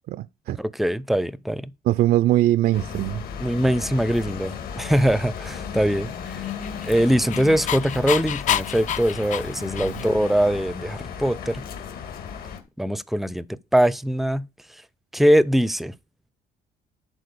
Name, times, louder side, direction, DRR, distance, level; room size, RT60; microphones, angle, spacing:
voice 1, 0.1-0.6 1.9-3.2 9.8-10.0, right 14 dB, 60° right, 0.4 m, -21 dB
voice 2, 0.6-1.7 3.4-6.5 6.8-11.6 12.8-13.5 13.7-14.5 15.1-15.9, equal, ahead, 0.5 m, -22 dB
sound 1, 2.7-12.6, left 7 dB, 65° left, 2.2 m, -35 dB
Dog, 6.4-10.3, left 10 dB, 50° left, 0.5 m, -29 dB
10.5 x 4.4 x 6.8 m
cardioid pair, 110°, 17 cm